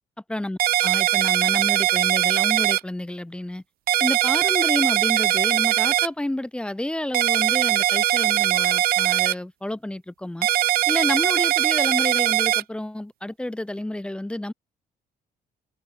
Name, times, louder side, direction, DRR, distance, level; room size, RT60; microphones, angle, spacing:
voice 1, 0.3-3.6 4.0-10.5 10.9-14.5, left 1 dB, 5° left, 1.2 m, -30 dB
sound 1, 0.6-2.8 3.9-6.1 7.1-9.3 10.4-12.6, right 15 dB, 65° right, 0.5 m, -21 dB
cardioid pair, 150°, 17 cm